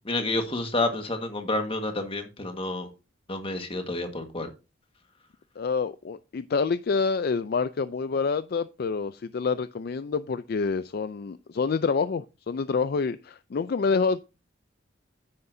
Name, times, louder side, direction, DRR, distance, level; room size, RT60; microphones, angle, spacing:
voice 1, 0.0-2.9 3.3-4.5, left 2 dB, 30° left, 1.6 m, -29 dB
voice 2, 5.6-14.2, left 5 dB, 55° left, 0.4 m, -27 dB
9.7 x 9.5 x 2.7 m
head